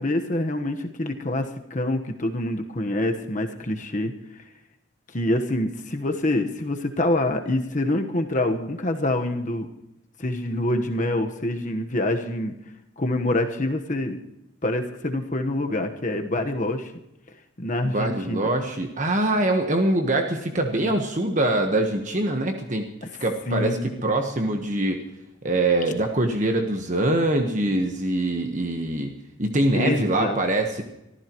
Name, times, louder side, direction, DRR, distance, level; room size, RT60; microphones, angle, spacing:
voice 1, 0.0-4.1 5.1-9.7 10.2-12.5 13.0-14.2 14.6-16.9 17.6-18.4 20.7-20.9 23.5-24.0 29.7-30.4, left 1 dB, 40° left, 5 dB, 1.3 m, -26 dB
voice 2, 17.8-22.9 23.2-23.8 24.0-25.0 25.4-29.1 29.4-30.8, right 1 dB, 40° right, 4 dB, 1.3 m, -23 dB
24.5 x 14.5 x 3.1 m, 0.87 s
head